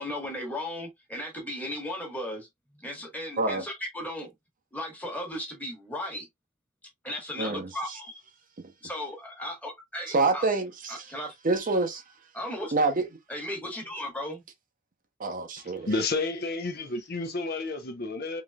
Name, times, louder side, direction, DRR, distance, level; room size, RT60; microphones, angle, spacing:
voice 1, 0.0-2.5 2.8-4.3 4.7-6.3 7.0-8.1 8.8-10.4 10.9-11.3 12.3-12.7 13.3-14.4, left 1 dB, 10° left, 1.3 m, -36 dB
voice 2, 7.4-8.0 8.6-8.7 10.1-11.1 11.4-12.0 12.7-13.1 15.2-15.9, right 3 dB, 40° right, 0.7 m, -27 dB
voice 3, 15.6-18.4, left 3 dB, 50° left, 0.7 m, -31 dB
3.9 x 3.1 x 2.3 m
head